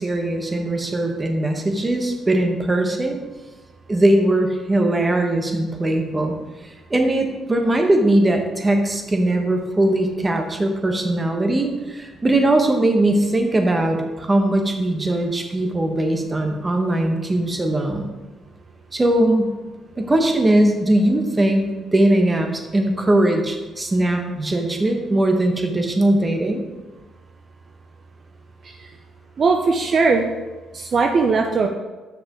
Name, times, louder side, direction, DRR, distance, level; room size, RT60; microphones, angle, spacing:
voice 1, 0.0-3.2 3.9-6.4 6.6-18.1 18.9-19.5 20.0-26.6, right 1 dB, 20° right, 4 dB, 1.2 m, -20 dB
voice 2, 29.4-30.3 30.7-31.7, right 4 dB, 50° right, 3 dB, 0.7 m, -18 dB
7.6 x 6.0 x 3.8 m, 1.2 s
cardioid pair, 90°, 0 cm